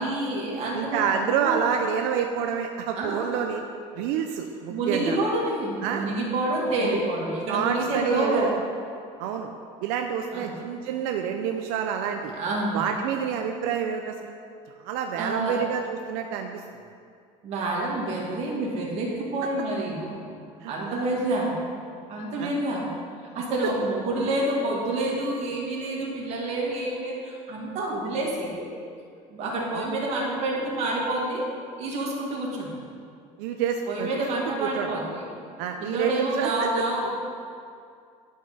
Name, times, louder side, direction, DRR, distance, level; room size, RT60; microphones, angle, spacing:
voice 1, 0.0-1.8 3.0-3.5 4.7-8.5 10.3-10.5 12.3-12.9 15.2-15.6 17.4-20.3 20.6-21.6 22.1-22.9 23.3-28.7 29.3-31.5 31.8-32.8 33.9-35.2 35.8-37.1, right 2 dB, 50° right, -3 dB, 2.1 m, -28 dB
voice 2, 0.7-3.6 4.0-5.2 5.8-6.1 6.8-6.9 7.5-8.6 9.2-9.5 9.8-12.3 12.7-14.3 14.8-16.8 20.6-21.0 22.4-22.5 29.7-29.9 33.4-34.2 34.6-34.9 35.6-36.7, right 7 dB, 90° right, 4 dB, 0.6 m, -28 dB
11.0 x 5.4 x 5.5 m, 2.3 s
cardioid pair, 165°, 14 cm